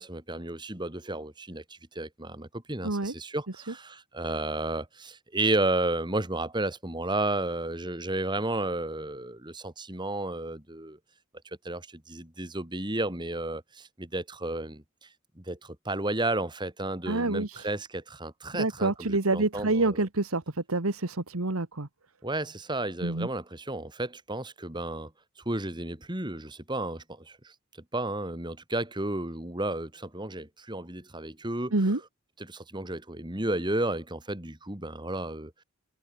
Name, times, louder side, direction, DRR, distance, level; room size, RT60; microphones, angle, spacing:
voice 1, 0.0-11.0 11.6-14.8 15.4-20.0 22.2-25.1 25.4-27.5 27.9-31.8 32.4-35.5, right 2 dB, 20° right, 2.9 m, -32 dB
voice 2, 2.8-3.1 17.1-17.6 18.5-20.4 20.7-21.9 23.0-23.3 31.7-32.0, right 2 dB, 90° right, 1.7 m, -27 dB
head